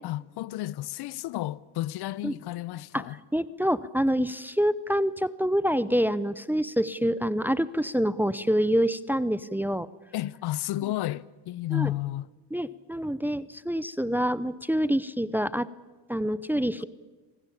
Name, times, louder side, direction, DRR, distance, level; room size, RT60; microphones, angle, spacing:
voice 1, 0.0-3.2 10.1-12.3, left 15 dB, 55° left, 0.7 m, -32 dB
voice 2, 3.3-9.9 11.7-11.9 12.5-15.7 16.1-16.8, equal, 5° right, 0.7 m, -26 dB
26.5 x 18.5 x 8.6 m
supercardioid pair, 95°, 46 cm